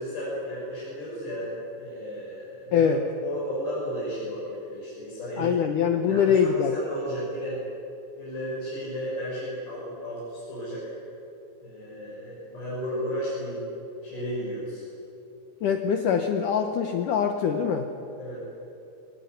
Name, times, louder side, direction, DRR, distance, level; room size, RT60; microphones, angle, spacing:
voice 1, 0.0-1.5 1.8-2.9 3.2-5.6 5.9-7.6 8.2-10.9 11.6-13.6 14.0-14.8 18.2-18.4, equal, 65° left, -9 dB, 8.8 m, -34 dB
voice 2, 5.4-6.7 15.6-17.9, left 7 dB, 80° left, 6 dB, 1.8 m, -23 dB
23.5 x 20.5 x 9.6 m, 2.8 s
omnidirectional pair, 5.2 m